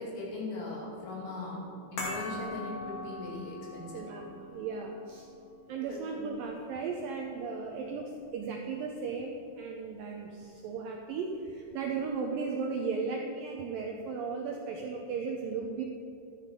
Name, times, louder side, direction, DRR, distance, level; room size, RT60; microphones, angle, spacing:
voice 1, 0.0-1.7 1.9-4.0 5.9-6.0, left 2 dB, 70° left, -4 dB, 4.4 m, -39 dB
sound 1, 2.0-8.4 8.7-8.8, left 2 dB, 45° left, 2.8 m, -43 dB
voice 2, 3.9-5.3 5.7-15.8, right 5 dB, 85° right, 1 dB, 2.0 m, -36 dB
12.5 x 10.0 x 5.2 m, 2.7 s
omnidirectional pair, 4.9 m